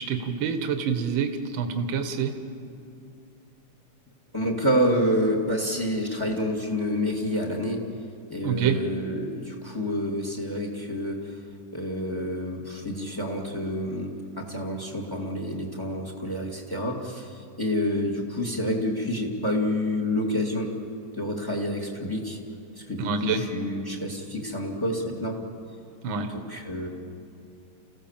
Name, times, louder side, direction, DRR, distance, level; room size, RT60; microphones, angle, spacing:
voice 1, 0.0-2.4 8.4-8.8 23.0-23.4 26.0-26.3, right 6 dB, 70° right, 7 dB, 2.0 m, -27 dB
voice 2, 4.3-7.8 8.3-11.4 11.7-20.7 21.1-22.4 22.8-25.4 26.3-26.9, equal, 10° left, 2 dB, 2.3 m, -28 dB
29.0 x 16.0 x 7.4 m, 2.7 s
omnidirectional pair, 2.2 m